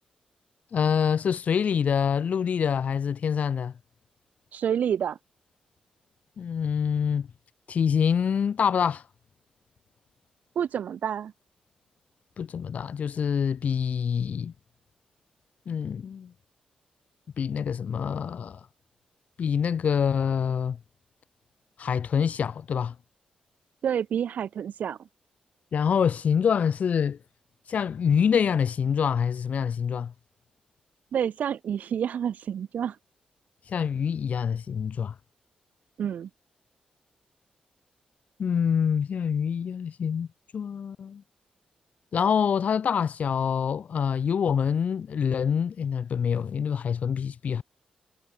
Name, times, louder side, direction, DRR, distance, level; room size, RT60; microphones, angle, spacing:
voice 1, 0.7-3.7 6.4-7.3 7.7-9.0 12.4-14.5 15.7-16.3 17.4-18.6 19.4-20.8 21.8-22.9 25.7-27.2 27.7-30.1 33.7-35.1 38.4-40.3 40.5-41.2 42.1-47.6, left 7 dB, 60° left, 6.7 m, -26 dB
voice 2, 4.5-5.2 10.5-11.3 23.8-25.0 31.1-33.0 36.0-36.3, right 8 dB, 75° right, 5.0 m, -28 dB
cardioid pair, 85°, 3 cm